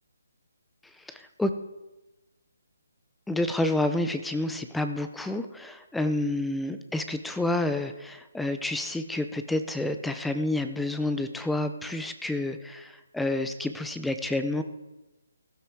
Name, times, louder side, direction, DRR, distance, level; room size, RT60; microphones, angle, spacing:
voice 1, 1.1-1.5 3.3-14.6, left 2 dB, 5° left, 8 dB, 0.6 m, -29 dB
15.0 x 12.5 x 4.7 m, 1.1 s
figure-of-eight pair, 150°, 0 cm